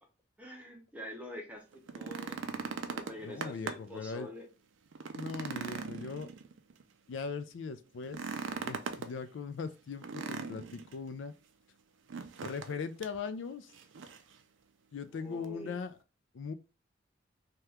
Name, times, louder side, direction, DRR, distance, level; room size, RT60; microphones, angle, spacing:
voice 1, 0.4-2.4 2.9-4.5 15.1-15.7, left 1 dB, 5° right, 0.7 m, -46 dB
sound 1, 1.7-4.0 4.4-4.5 4.9-6.8 8.0-9.1 10.0-10.9 12.1-12.7 13.0-13.2 13.7-14.3 15.4-15.5, right 5 dB, 85° right, 0.4 m, -40 dB
voice 2, 3.2-4.3 5.1-6.3 7.1-8.2 8.6-11.3 12.4-13.7 14.9-16.0 16.3-16.5, left 5 dB, 80° left, 0.4 m, -40 dB
2.8 x 2.3 x 3.3 m
head